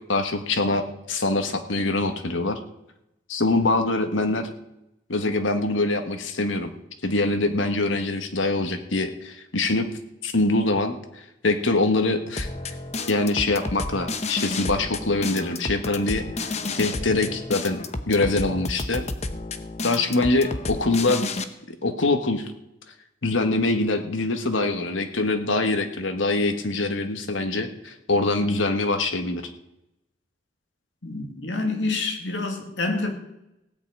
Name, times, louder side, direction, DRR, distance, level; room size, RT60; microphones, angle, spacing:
voice 1, 0.1-2.6 3.3-4.5 5.1-6.7 7.0-10.9 11.4-12.5 13.1-19.0 19.8-21.3 21.8-22.5 23.2-29.4, left 2 dB, 90° left, 7 dB, 1.5 m, -24 dB
sound 1, 12.4-21.4, left 3 dB, 35° left, 0.8 m, -31 dB
voice 2, 31.0-33.1, left 3 dB, 70° left, 4 dB, 2.3 m, -27 dB
16.5 x 5.7 x 8.8 m, 0.86 s
head